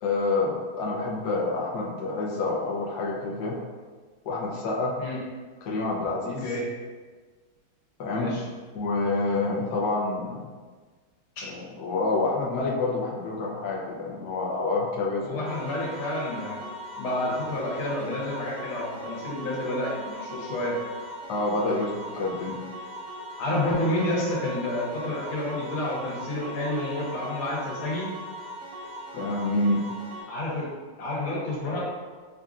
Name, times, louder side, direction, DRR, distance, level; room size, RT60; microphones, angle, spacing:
voice 1, 0.0-3.5 4.2-4.9 5.6-6.5 8.0-8.3 8.7-10.4 11.4-15.4 21.3-22.6 29.1-29.8, left 3 dB, 65° left, -4 dB, 1.1 m, -27 dB
voice 2, 8.1-8.4 11.4-11.5 15.3-16.6 17.0-20.8 23.4-28.1 30.3-30.7 31.0-31.9, left 1 dB, 85° left, -5 dB, 1.9 m, -29 dB
sound 1, 15.5-30.2, equal, 60° right, 1.1 m, -40 dB
5.5 x 2.5 x 2.4 m, 1.4 s
omnidirectional pair, 2.3 m